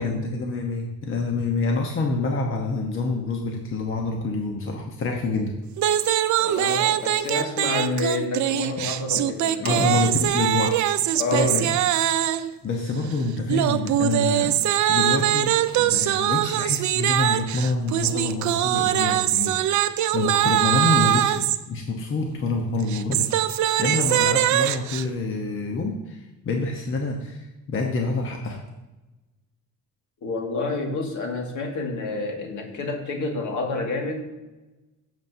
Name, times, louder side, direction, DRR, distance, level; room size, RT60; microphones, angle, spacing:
voice 1, 0.0-5.5 9.1-9.2 9.6-10.9 11.3-11.8 12.6-14.6 14.9-28.6, left 3 dB, 40° left, 1 dB, 1.1 m, -27 dB
sound 1, 5.8-12.5 13.5-21.6 22.8-25.0, right 12 dB, 65° right, 0.6 m, -22 dB
voice 2, 6.4-10.0 11.1-11.7 30.2-34.2, left 3 dB, 65° left, 2 dB, 2.1 m, -29 dB
15.0 x 7.4 x 2.8 m, 1.1 s
cardioid pair, 130°, 32 cm